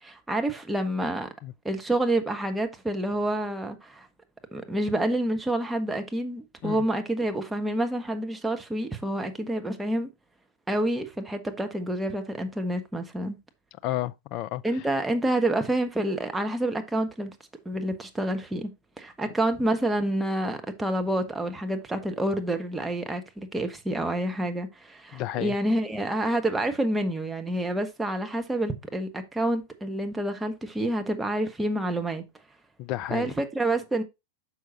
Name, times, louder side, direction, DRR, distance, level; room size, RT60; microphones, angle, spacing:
voice 1, 0.0-1.3 1.6-4.1 4.5-10.1 10.7-13.4 14.6-17.3 17.6-18.7 19.0-32.2 33.1-34.0, right 1 dB, 10° right, 1.0 m, -28 dB
voice 2, 13.8-14.6 25.1-25.5 32.8-33.3, left 14 dB, 40° left, 0.4 m, -31 dB
6.3 x 5.6 x 3.9 m
figure-of-eight pair, 90°, 0 cm